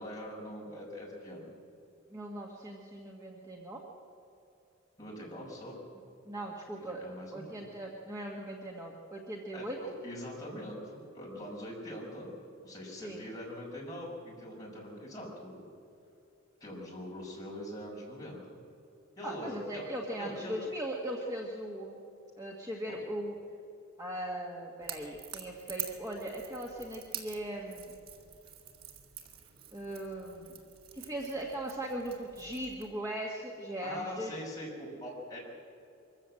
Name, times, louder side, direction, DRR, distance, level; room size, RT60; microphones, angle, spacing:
voice 1, 0.0-1.5 5.0-5.8 6.8-7.6 9.5-12.4 12.6-15.6 16.6-18.6 19.2-19.8 20.2-20.5 22.9-23.0 33.8-35.4, left 1 dB, 15° left, -4 dB, 6.0 m, -43 dB
voice 2, 2.1-3.8 6.3-9.8 12.9-13.3 19.2-22.0 22.4-23.4 24.0-28.0 29.7-30.6 30.9-34.4, right 1 dB, 15° right, -1 dB, 1.8 m, -39 dB
Crackle / Crack, 24.8-32.9, right 10 dB, 80° right, 2.3 m, -46 dB
24.0 x 15.0 x 7.7 m, 2.8 s
head